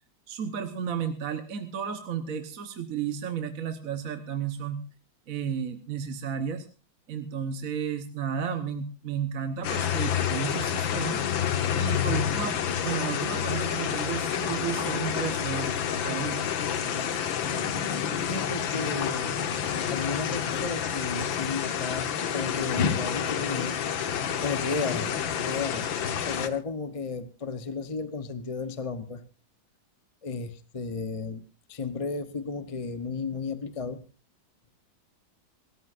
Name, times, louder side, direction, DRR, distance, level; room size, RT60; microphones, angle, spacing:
voice 1, 0.3-4.8 5.3-6.7 7.1-11.2 11.7-15.7 16.0-16.4, right 7 dB, 50° right, 8 dB, 1.4 m, -33 dB
sound 1, 9.6-26.5, left 8 dB, 75° left, 1.9 m, -29 dB
sound 2, 12.5-20.9 21.2-21.4, left 2 dB, 30° right, 6.2 m, -50 dB
voice 2, 18.2-19.4 19.9-23.8 24.4-25.2 25.5-25.9 26.3-29.2 30.2-31.4 31.7-34.0, left 4 dB, 30° left, 11 dB, 0.6 m, -33 dB
27.0 x 14.0 x 2.6 m, 0.33 s
omnidirectional pair, 2.1 m